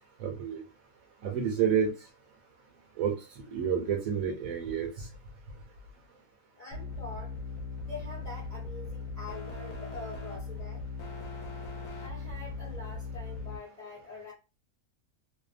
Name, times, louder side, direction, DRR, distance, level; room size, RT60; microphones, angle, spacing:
voice 1, 0.2-0.6 1.2-1.9 3.0-3.1 3.5-4.9, right 7 dB, 65° right, 1.0 m, -29 dB
voice 2, 6.6-7.4 7.8-10.9 12.0-14.3, left 2 dB, 40° left, 0.5 m, -45 dB
sound 1, 6.7-13.6, left 4 dB, 65° left, 0.9 m, -39 dB
2.7 x 2.3 x 2.4 m
omnidirectional pair, 1.7 m